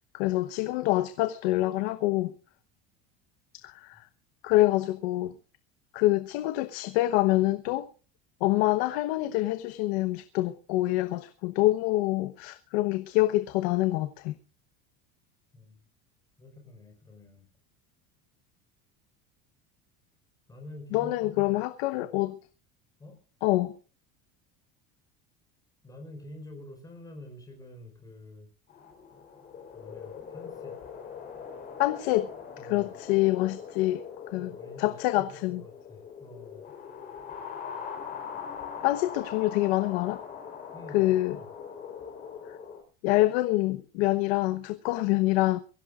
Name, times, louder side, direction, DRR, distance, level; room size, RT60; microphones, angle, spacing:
voice 1, 0.1-2.3 3.6-4.0 4.4-5.3 5.9-7.9 8.4-14.3 20.9-22.4 23.4-23.7 31.8-32.3 32.6-34.0 34.3-34.5 34.8-35.6 38.8-40.2 40.9-41.4 42.5-42.6 43.0-45.6, left 17 dB, 70° left, 1.1 m, -26 dB
voice 2, 15.5-15.9 16.4-17.5 20.5-21.6 21.9-22.0 23.0-23.2 25.8-28.5 29.7-30.8 32.6-32.9 34.4-36.6 40.7-41.5, left 1 dB, 10° left, 4.9 m, -47 dB
sound 1, 28.7-42.8, left 7 dB, 25° left, 4.1 m, -42 dB
23.5 x 16.5 x 2.5 m
cardioid pair, 180°, 33 cm